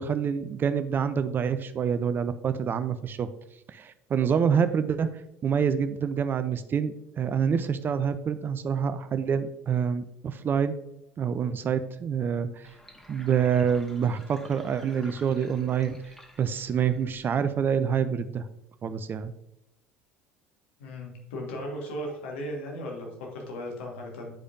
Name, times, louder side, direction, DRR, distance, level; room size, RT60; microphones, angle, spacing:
voice 1, 0.0-3.3 3.7-5.1 5.4-10.8 11.2-12.7 13.1-16.0 16.4-18.5 18.8-19.3, right 7 dB, 30° right, 11 dB, 0.4 m, -27 dB
Sink (filling or washing), 12.6-17.6, equal, 5° left, 1.4 m, -52 dB
voice 2, 20.8-24.3, equal, 65° left, 0 dB, 1.5 m, -36 dB
10.0 x 4.9 x 2.6 m, 0.84 s
figure-of-eight pair, 65°, 7 cm